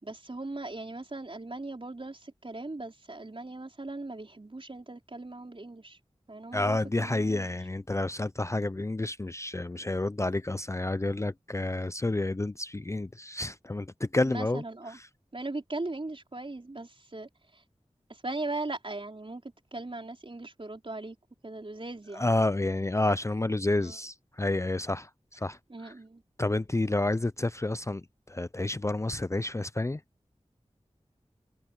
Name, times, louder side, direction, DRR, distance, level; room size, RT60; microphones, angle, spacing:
voice 1, 0.0-6.0 6.3-7.5 14.2-15.0 15.3-17.6 18.1-21.2 21.4-22.3 23.8-24.0 25.7-26.2, right 2 dB, 45° right, 4.5 m, -39 dB
voice 2, 6.5-14.6 22.2-25.6 25.8-25.9 26.4-30.0, left 2 dB, 25° left, 0.5 m, -29 dB
wide cardioid pair, 60°, 12 cm